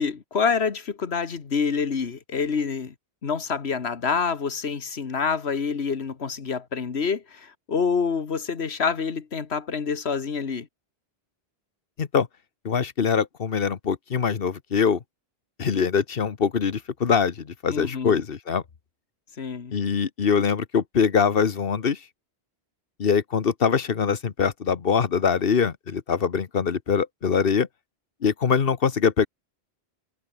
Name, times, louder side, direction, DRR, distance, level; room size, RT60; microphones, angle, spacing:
voice 1, 0.0-2.9 3.2-10.7 17.7-18.2 19.4-19.7, left 5 dB, 80° left, 1.8 m, -27 dB
voice 2, 12.6-15.0 15.6-18.6 19.7-22.0 23.0-27.7 28.2-29.3, left 6 dB, 60° left, 1.3 m, -23 dB
omnidirectional pair, 1.1 m